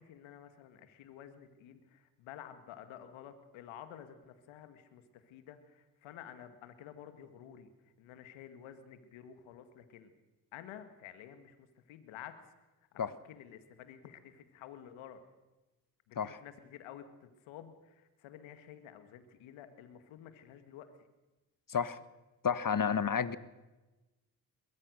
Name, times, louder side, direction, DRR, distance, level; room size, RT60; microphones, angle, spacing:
voice 1, 0.0-7.7 8.0-10.1 10.5-12.4 12.9-15.2 16.1-20.9, left 10 dB, 85° left, 10 dB, 2.1 m, -51 dB
voice 2, 22.4-23.4, left 7 dB, 45° left, 15 dB, 1.6 m, -31 dB
23.0 x 22.0 x 6.6 m, 1.1 s
hypercardioid pair, 40°, 46 cm